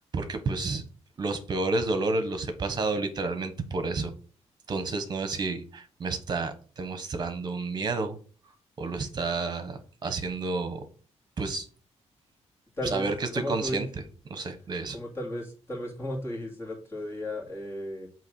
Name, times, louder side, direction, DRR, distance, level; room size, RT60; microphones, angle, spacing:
voice 1, 0.1-0.8 1.2-4.1 4.7-8.2 8.8-10.8 11.4-11.7 12.9-13.9 14.3-15.0, right 3 dB, 35° right, 9 dB, 1.3 m, -30 dB
voice 2, 12.8-13.1 13.3-13.9 14.9-18.1, left 1 dB, 20° left, -2 dB, 2.6 m, -34 dB
8.1 x 3.2 x 6.4 m, 0.39 s
wide cardioid pair, 145°, 12 cm